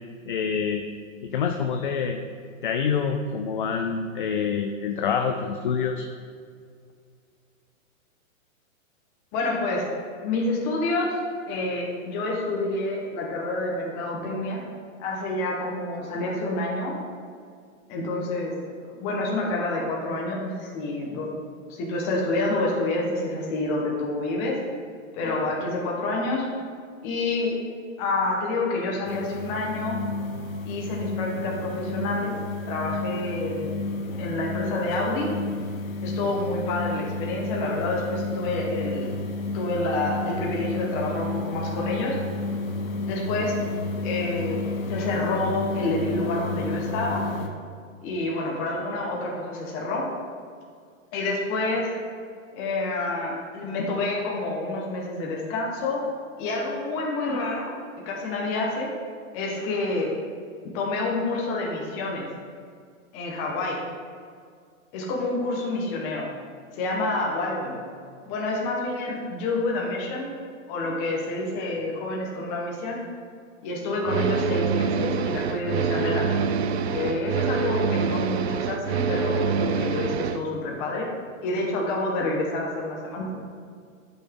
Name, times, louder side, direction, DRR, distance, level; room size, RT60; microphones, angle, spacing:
voice 1, 0.3-0.9 1.2-2.2 2.6-6.0, left 6 dB, 40° left, 5 dB, 0.4 m, -26 dB
voice 2, 9.3-9.9 10.2-11.2 11.5-14.6 15.0-17.0 17.9-18.6 18.9-21.4 21.7-24.6 25.1-26.5 27.0-27.6 28.0-30.0 30.7-32.4 32.7-33.8 34.2-35.3 36.0-39.1 39.5-42.2 43.0-43.6 44.0-47.3 48.0-50.1 51.1-51.9 52.6-56.1 56.4-57.7 58.0-58.9 59.3-60.2 60.7-62.3 63.1-63.8 64.9-66.3 66.7-67.8 68.2-70.3 70.7-73.0 73.6-76.3 76.9-81.1 81.4-83.3, left 2 dB, 20° left, -2 dB, 1.3 m, -28 dB
sound 1, 29.0-47.5, left 3 dB, 80° left, 1.6 m, -31 dB
sound 2, 74.0-80.4, right 5 dB, 55° right, 0.5 m, -25 dB
12.0 x 6.1 x 3.7 m, 2.1 s
hypercardioid pair, 170°, 40 cm